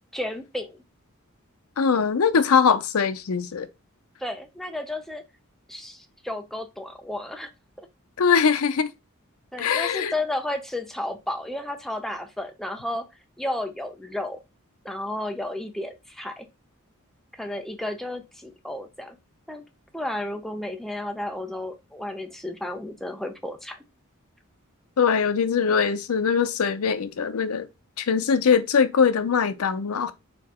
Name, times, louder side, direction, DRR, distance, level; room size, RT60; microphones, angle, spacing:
voice 1, 0.1-0.8 4.2-5.2 5.7-7.5 7.8-7.9 9.5-13.1 13.4-14.4 14.8-16.5 17.3-19.2 19.5-19.6 19.9-23.8, left 1 dB, ahead, 0.6 m, -32 dB
voice 2, 1.8-3.7 8.2-8.9 9.6-10.1 25.0-27.7 28.0-30.1, left 6 dB, 85° left, 0.6 m, -22 dB
4.3 x 2.8 x 4.2 m
head